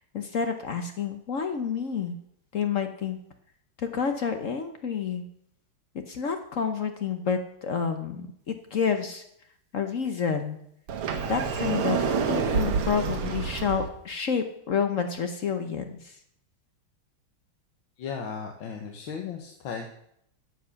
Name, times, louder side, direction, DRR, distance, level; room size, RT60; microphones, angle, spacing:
voice 1, 0.1-2.2 2.5-3.2 3.8-5.2 5.9-9.2 9.7-10.6 11.3-16.2, left 6 dB, 55° left, 7 dB, 0.9 m, -29 dB
Sliding door, 10.9-13.9, right 5 dB, 90° right, 2.1 m, -27 dB
voice 2, 18.0-19.9, left 6 dB, 70° left, 3 dB, 1.8 m, -36 dB
10.5 x 7.7 x 7.0 m, 0.72 s
omnidirectional pair, 2.3 m